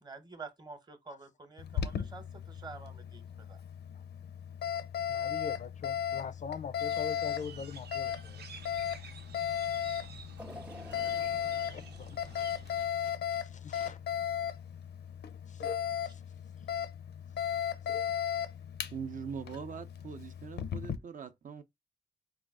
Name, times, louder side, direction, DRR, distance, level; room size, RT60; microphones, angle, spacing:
voice 1, 0.0-3.6, right 4 dB, 25° right, 0.9 m, -48 dB
Alarm, 1.6-21.0, left 9 dB, 90° left, 0.6 m, -36 dB
voice 2, 5.1-8.5 10.0-10.1 10.4-10.6 11.5-14.0 15.5-15.6 16.0-16.2, left 6 dB, 45° left, 0.4 m, -44 dB
sound 1, 6.8-12.9, right 6 dB, 80° right, 0.8 m, -51 dB
sound 2, 10.4-13.5 14.0-14.1 15.1-15.2, left 1 dB, 10° right, 0.5 m, -51 dB
voice 3, 18.9-21.6, right 6 dB, 55° right, 0.5 m, -42 dB
4.9 x 2.3 x 3.5 m
wide cardioid pair, 165°, 17 cm